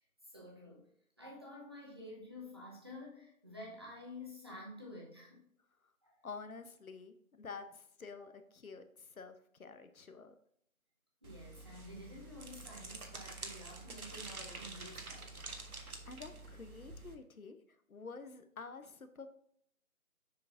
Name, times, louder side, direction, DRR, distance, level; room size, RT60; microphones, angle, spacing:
voice 1, 0.2-0.9 1.2-5.4 6.0-6.1 8.2-8.3 11.2-15.4, left 1 dB, 20° right, -4 dB, 0.9 m, -50 dB
voice 2, 6.2-10.3 16.1-17.6 17.9-19.3, left 4 dB, 75° left, 9 dB, 1.0 m, -49 dB
sound 1, 11.2-17.2, right 3 dB, 85° right, 1.3 m, -48 dB
6.7 x 5.9 x 2.6 m, 0.68 s
figure-of-eight pair, 165°, 42 cm